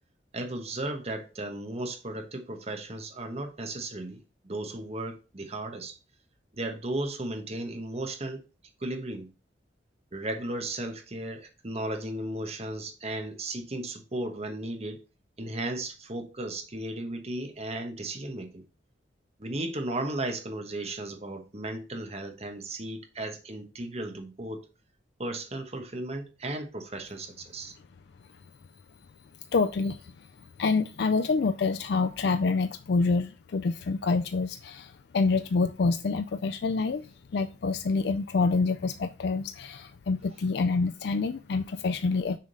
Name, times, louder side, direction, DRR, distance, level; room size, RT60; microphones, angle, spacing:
voice 1, 0.3-6.0 6.5-8.4 8.8-9.3 10.1-15.0 15.4-18.6 19.4-24.6 25.2-27.7, right 1 dB, 35° right, 1.2 m, -35 dB
voice 2, 29.5-30.3 30.6-42.4, left 4 dB, 60° left, 0.4 m, -27 dB
6.5 x 3.7 x 5.4 m
head